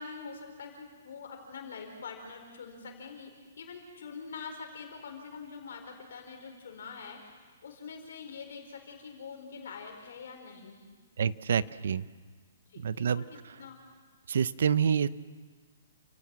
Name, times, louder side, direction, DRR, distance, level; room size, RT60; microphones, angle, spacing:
voice 1, 0.0-3.3 3.6-10.9 12.7-13.8, left 5 dB, 60° left, 3 dB, 4.4 m, -45 dB
voice 2, 11.2-12.1 12.8-13.6 14.3-15.1, right 7 dB, 55° right, 17 dB, 0.7 m, -28 dB
29.0 x 17.5 x 7.6 m, 1.5 s
hypercardioid pair, 180°, 0 cm